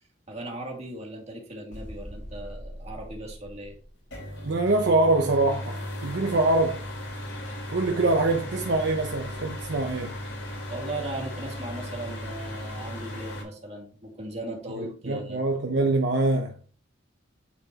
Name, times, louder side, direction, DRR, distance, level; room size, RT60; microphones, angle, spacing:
voice 1, 0.3-3.8 10.7-15.4, right 1 dB, 35° right, 2.0 m, -37 dB
sound 1, 1.7-4.4, equal, 40° left, 2.3 m, -42 dB
sound 2, 4.1-13.4, left 1 dB, 80° left, 3.3 m, -36 dB
voice 2, 4.4-6.8 7.7-10.2 14.8-16.6, right 2 dB, 65° right, 0.8 m, -24 dB
9.5 x 4.2 x 2.9 m
head